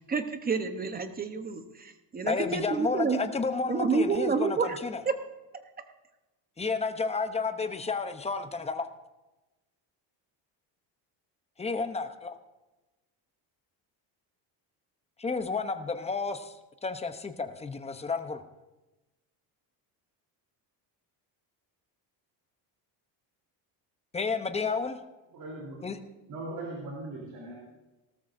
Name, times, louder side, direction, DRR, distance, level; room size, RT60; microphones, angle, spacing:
voice 1, 0.1-3.2 3.7-4.8 5.0-5.1, right 4 dB, 20° right, 8 dB, 1.0 m, -29 dB
voice 2, 2.3-5.0 6.6-8.9 11.6-12.3 15.2-16.5 16.8-18.4 24.1-25.0 25.8-26.0, left 4 dB, 15° left, 8 dB, 0.7 m, -31 dB
voice 3, 25.3-25.9 26.3-27.6, right 2 dB, 55° right, -3 dB, 3.5 m, -39 dB
18.5 x 13.5 x 2.6 m, 1.1 s
cardioid pair, 140°, 44 cm